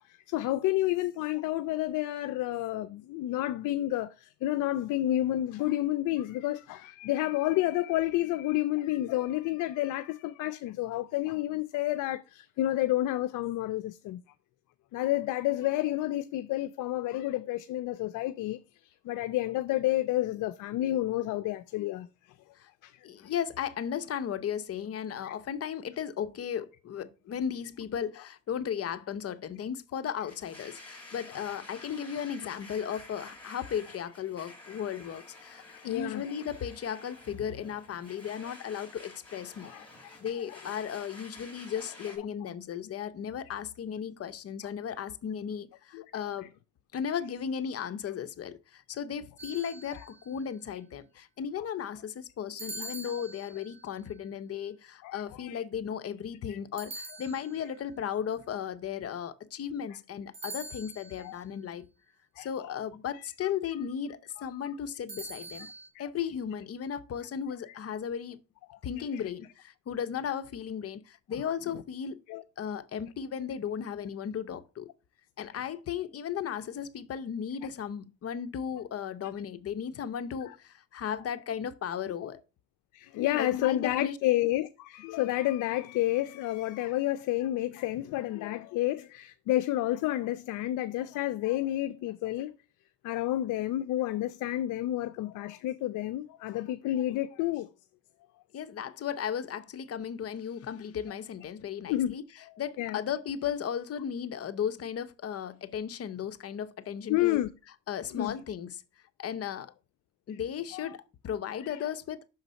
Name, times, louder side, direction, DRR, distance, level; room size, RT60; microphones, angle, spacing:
voice 1, 0.3-14.2 14.9-18.6 18.8-22.1 22.8-22.9 25.2-25.3 35.7-36.3 39.7-40.1 40.5-40.6 45.9-46.3 49.9-50.0 52.8-52.9 55.0-55.6 56.5-56.6 61.2-61.4 62.4-62.7 68.7-68.8 69.1-69.2 71.7-71.8 72.3-72.4 80.5-80.6 82.2-82.3 82.9-92.5 93.0-97.7 101.9-102.1 102.4-103.0 107.1-107.5 108.1-108.4 110.7-110.8 111.6-111.8, left 15 dB, 85° left, 0.5 m, -30 dB
voice 2, 23.0-39.7 40.0-46.5 46.9-61.9 62.4-65.7 66.0-68.4 68.8-72.2 72.6-74.9 75.4-82.4 83.3-84.2 98.5-102.2 102.6-107.4 107.9-108.8 109.2-109.7 110.3-112.2, left 8 dB, 50° left, 0.7 m, -35 dB
Domestic sounds home sounds, 30.3-42.2, left 2 dB, 5° left, 3.4 m, -50 dB
sound 1, 49.4-50.3 52.6-53.8 56.8-57.8 60.3-61.3 65.1-65.9, right 2 dB, 40° right, 2.6 m, -43 dB
6.3 x 4.0 x 5.1 m
cardioid pair, 90°, 30 cm